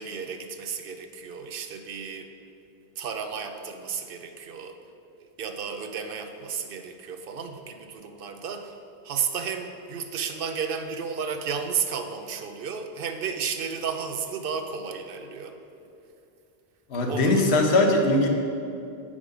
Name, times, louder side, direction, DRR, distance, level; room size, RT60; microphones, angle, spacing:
voice 1, 0.0-2.3 3.0-4.8 5.2-8.8 9.0-15.6 17.1-17.6, right 6 dB, 65° right, 7 dB, 0.7 m, -33 dB
voice 2, 16.9-18.3, left 2 dB, 85° left, 2 dB, 1.1 m, -20 dB
7.2 x 5.1 x 5.0 m, 2.6 s
omnidirectional pair, 1.1 m